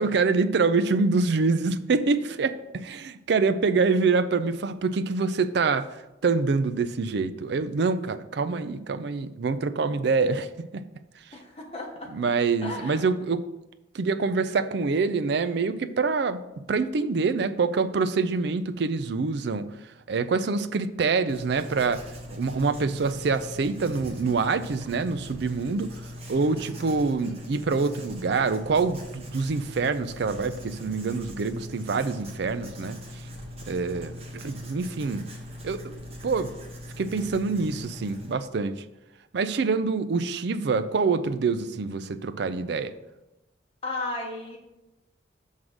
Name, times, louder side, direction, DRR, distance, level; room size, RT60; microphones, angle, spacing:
voice 1, 0.0-10.8 12.1-13.4 13.9-16.4 16.7-19.7 20.1-26.0 26.3-33.0 33.7-35.3 35.6-36.5 37.0-38.8 39.3-42.9, right 4 dB, 60° right, 11 dB, 0.4 m, -26 dB
voice 2, 11.3-12.3 12.6-13.0 26.5-27.0 43.8-44.6, left 2 dB, 30° left, 0 dB, 1.2 m, -35 dB
Writing, 21.3-38.3, left 1 dB, 35° right, 1.1 m, -41 dB
6.2 x 3.7 x 6.2 m, 0.98 s
head